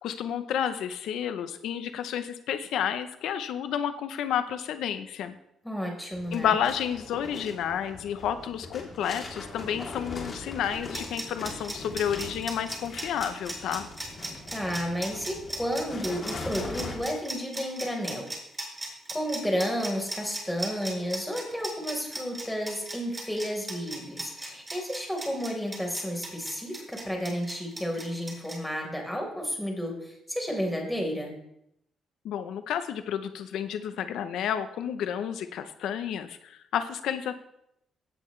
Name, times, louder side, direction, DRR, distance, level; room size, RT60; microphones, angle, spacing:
voice 1, 0.0-5.4 6.3-13.9 32.2-37.3, left 9 dB, 80° left, 10 dB, 0.7 m, -31 dB
voice 2, 5.6-6.6 14.5-18.3 19.1-31.3, equal, 5° left, 0 dB, 4.1 m, -32 dB
sound 1, 6.1-17.0, left 3 dB, 40° left, 3.2 m, -41 dB
sound 2, 10.7-28.6, right 2 dB, 15° right, 5.5 m, -37 dB
17.0 x 8.7 x 3.2 m, 0.78 s
cardioid pair, 90°, 0 cm